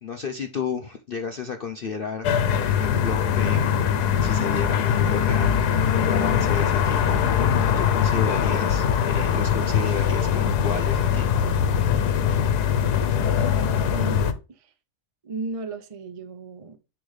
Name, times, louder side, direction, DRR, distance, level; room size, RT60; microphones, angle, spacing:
voice 1, 0.0-2.3 2.6-3.7 4.2-7.2 7.8-11.3, left 5 dB, 50° left, 0.6 m, -32 dB
sound 1, 2.2-14.3, left 8 dB, 85° left, 1.4 m, -22 dB
voice 2, 13.9-14.4 15.2-16.8, right 3 dB, 35° right, 0.6 m, -34 dB
10.0 x 3.5 x 3.2 m
omnidirectional pair, 1.7 m